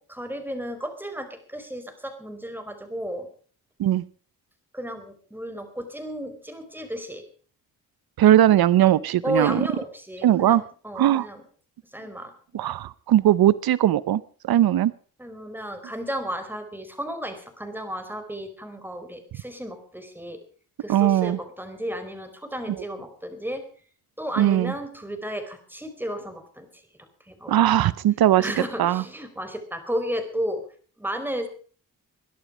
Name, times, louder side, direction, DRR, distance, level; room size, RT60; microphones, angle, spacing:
voice 1, 0.1-3.3 4.7-7.2 9.2-11.4 11.9-12.3 15.2-20.4 20.8-23.6 24.2-26.7 27.3-27.8 28.4-30.6 31.0-31.5, equal, 5° right, 7 dB, 4.4 m, -33 dB
voice 2, 8.2-9.7 10.2-10.6 10.9-11.3 12.5-14.9 20.9-21.4 24.4-24.7 27.5-28.5 28.8-29.0, right 12 dB, 85° right, 19 dB, 0.6 m, -19 dB
22.0 x 11.0 x 5.0 m, 0.43 s
cardioid pair, 85°, 36 cm